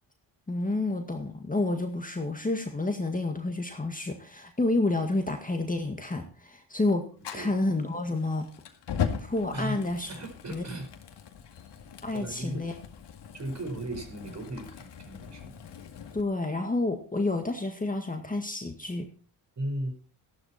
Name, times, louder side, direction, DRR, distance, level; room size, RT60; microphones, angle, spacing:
voice 1, 0.5-7.1 7.3-8.5 9.2-10.1 10.5-10.6 12.0-12.7 16.1-19.1, left 2 dB, 20° left, 4 dB, 1.9 m, -29 dB
Fire, 7.2-16.2, left 7 dB, 65° left, 2.1 m, -39 dB
voice 2, 9.5-9.8 10.1-10.9 12.1-12.6 13.3-15.5 19.5-19.9, right 1 dB, 35° right, 6 dB, 5.0 m, -36 dB
14.0 x 12.0 x 4.3 m, 0.39 s
cardioid pair, 85°, 45 cm